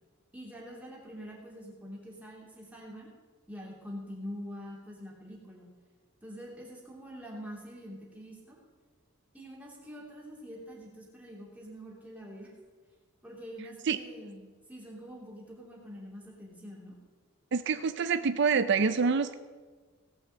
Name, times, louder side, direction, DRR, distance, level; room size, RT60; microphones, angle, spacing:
voice 1, 0.3-3.1 3.5-5.7 6.2-8.6 9.3-12.5 13.2-17.0, equal, 5° right, -3 dB, 2.9 m, -45 dB
voice 2, 17.5-19.3, right 5 dB, 55° right, 11 dB, 0.5 m, -26 dB
17.5 x 6.1 x 7.7 m, 1.4 s
head